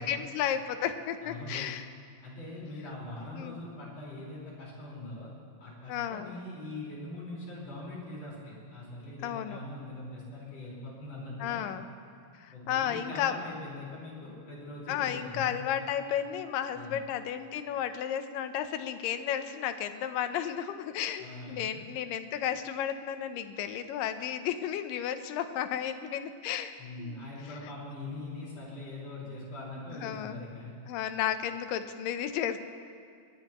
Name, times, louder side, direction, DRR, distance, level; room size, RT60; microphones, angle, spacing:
voice 1, 0.0-1.9 3.4-3.6 5.9-6.3 9.2-9.6 11.4-11.9 12.3-13.4 14.9-26.7 27.0-27.3 29.9-30.5 30.9-32.6, left 9 dB, 90° left, 9 dB, 2.5 m, -33 dB
voice 2, 1.2-1.6 2.2-5.3 5.6-11.6 12.5-15.5 16.7-17.0 21.2-21.7 26.8-30.7, left 2 dB, 50° left, -5 dB, 5.7 m, -42 dB
21.0 x 20.0 x 3.0 m, 2.2 s
omnidirectional pair, 3.8 m